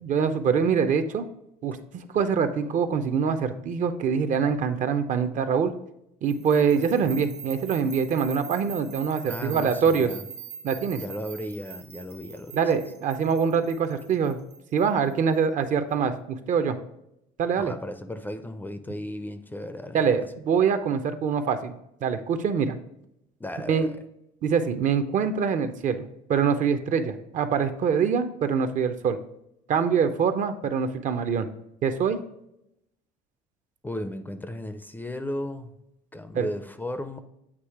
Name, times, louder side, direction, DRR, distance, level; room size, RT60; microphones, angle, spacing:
voice 1, 0.0-1.3 1.6-5.7 6.2-10.1 10.6-11.0 12.5-14.4 14.7-16.8 17.4-17.7 19.9-21.7 22.0-22.8 23.7-23.9 24.4-29.2 29.7-31.5 31.8-32.2 36.3-36.5, right 6 dB, 50° right, 10 dB, 0.6 m, -24 dB
sound 1, 6.3-15.3, right 8 dB, 80° right, 0.9 m, -42 dB
voice 2, 6.8-7.1 9.3-10.2 11.0-12.6 17.6-20.3 23.4-24.0 33.8-35.7 36.1-37.2, left 1 dB, 10° left, 9 dB, 0.4 m, -35 dB
8.2 x 2.8 x 4.6 m, 0.81 s
supercardioid pair, 100°, 17 cm